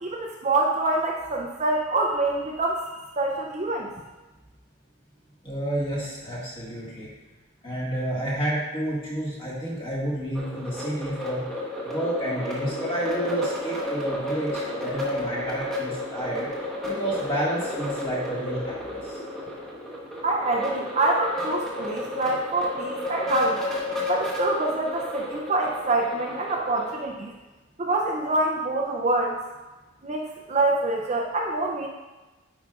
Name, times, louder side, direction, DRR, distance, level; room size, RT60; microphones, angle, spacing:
voice 1, 0.0-2.8 3.2-3.9 20.2-23.6 24.1-27.3 27.8-29.4 30.0-31.9, right 2 dB, 30° right, -1 dB, 0.5 m, -25 dB
voice 2, 5.4-7.1 7.6-11.5 11.8-19.2, right 1 dB, 25° left, -7 dB, 1.7 m, -30 dB
sound 1, 10.3-27.0, left 2 dB, ahead, 1.0 m, -32 dB
9.7 x 4.8 x 2.4 m, 1.2 s
head